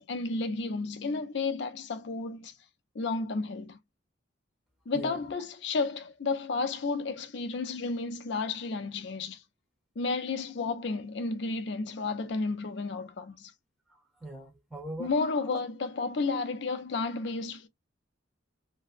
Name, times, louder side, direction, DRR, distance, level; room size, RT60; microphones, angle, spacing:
voice 1, 0.0-2.5 2.9-3.8 4.9-9.4 10.0-13.5 15.0-17.7, left 3 dB, 60° left, 0.4 m, -32 dB
voice 2, 4.9-5.2 12.0-12.1 13.9-15.6, equal, ahead, 0.7 m, -42 dB
2.6 x 2.1 x 2.4 m
head